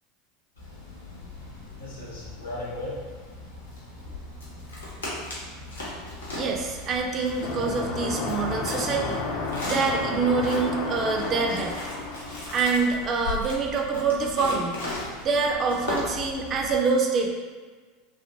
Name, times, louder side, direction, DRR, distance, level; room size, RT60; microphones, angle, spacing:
Rotting Wood, 0.5-16.8, left 2 dB, 80° left, 1.0 m, -37 dB
voice 1, 6.4-9.2 9.6-11.8 12.5-14.8 15.1-17.3, right 4 dB, 35° right, 1 dB, 0.4 m, -25 dB
sound 1, 7.4-12.9, left 3 dB, 55° left, 0.4 m, -32 dB
3.1 x 2.7 x 2.7 m, 1.4 s
figure-of-eight pair, 80°, 0 cm